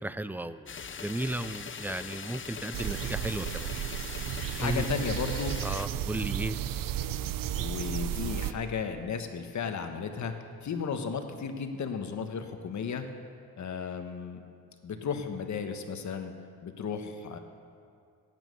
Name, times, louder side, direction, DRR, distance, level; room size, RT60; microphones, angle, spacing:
voice 1, 0.0-0.7 1.0-3.7 4.6-4.8 5.6-6.6, right 1 dB, 5° right, 13 dB, 0.4 m, -34 dB
sound 1, 0.7-5.9, left 6 dB, 35° left, 0.7 m, -41 dB
sound 2, 2.7-8.5, right 11 dB, 65° right, 0.7 m, -33 dB
voice 2, 4.5-5.6 7.5-10.3 10.6-13.0 13.6-14.4 14.8-16.3 16.6-17.4, left 6 dB, 50° left, 6 dB, 1.3 m, -34 dB
17.5 x 9.1 x 5.4 m, 2.3 s
cardioid pair, 100°, 35 cm